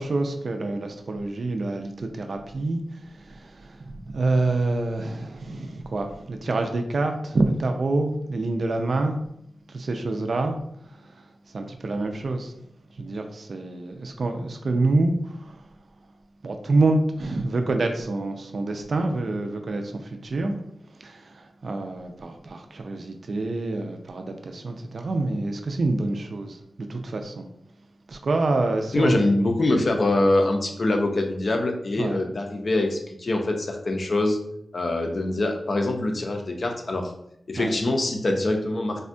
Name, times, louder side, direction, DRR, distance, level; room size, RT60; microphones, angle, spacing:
voice 1, 0.0-3.8 4.1-9.2 9.7-10.6 11.0-11.2 11.5-12.5 13.0-15.6 16.4-20.6 21.0-27.5 28.1-29.2 32.0-32.2 37.6-37.8, right 2 dB, 60° right, 5 dB, 0.3 m, -27 dB
voice 2, 28.9-34.4 34.7-37.1 37.5-39.0, left 2 dB, 50° left, 3 dB, 0.4 m, -24 dB
3.4 x 2.2 x 2.5 m, 0.75 s
wide cardioid pair, 125°, 0 cm